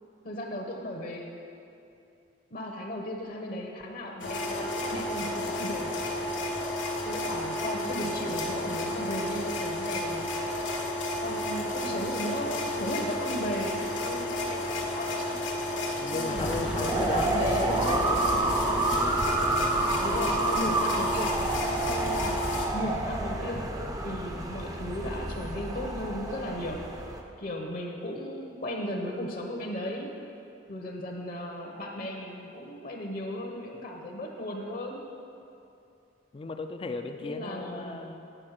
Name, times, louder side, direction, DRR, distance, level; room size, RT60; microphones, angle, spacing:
voice 1, 0.2-1.4 2.5-5.9 7.0-10.3 11.2-15.4 16.1-18.2 20.0-22.3 22.7-23.7 24.0-26.9 27.4-30.1 30.7-35.0 37.2-38.0, equal, 50° left, 2 dB, 0.9 m, -36 dB
sound 1, 4.2-22.7, left 1 dB, 85° left, 1.3 m, -32 dB
voice 2, 16.0-17.6 17.9-18.2 36.3-38.2, left 3 dB, 30° left, 6 dB, 0.4 m, -36 dB
sound 2, 16.4-27.2, right 2 dB, 20° right, 0.6 m, -29 dB
8.9 x 5.4 x 6.4 m, 2.7 s
head